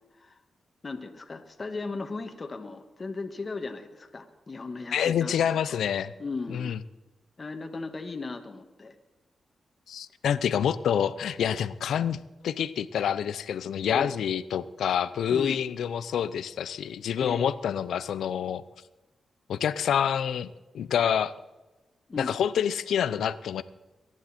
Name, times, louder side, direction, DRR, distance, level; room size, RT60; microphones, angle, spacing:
voice 1, 0.8-5.8 6.2-6.7 7.4-9.0 13.9-14.1 15.3-15.6 17.2-17.5 22.1-22.3, left 3 dB, 40° left, 5 dB, 1.8 m, -37 dB
voice 2, 4.9-6.1 6.5-6.8 9.9-18.6 19.5-21.3 22.2-23.6, left 8 dB, 85° left, 15 dB, 0.7 m, -27 dB
23.5 x 11.0 x 4.4 m, 1.1 s
cardioid pair, 60°, 0 cm